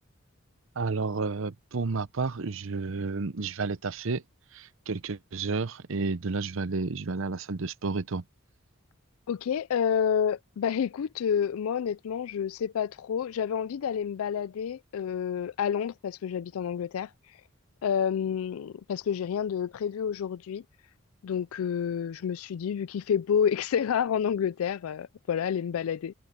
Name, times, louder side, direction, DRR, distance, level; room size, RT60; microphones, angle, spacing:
voice 1, 0.8-4.2 4.5-8.2, right 4 dB, 70° right, 0.7 m, -31 dB
voice 2, 9.3-17.4 17.8-20.6 21.2-26.1, left 8 dB, 85° left, 0.4 m, -29 dB
head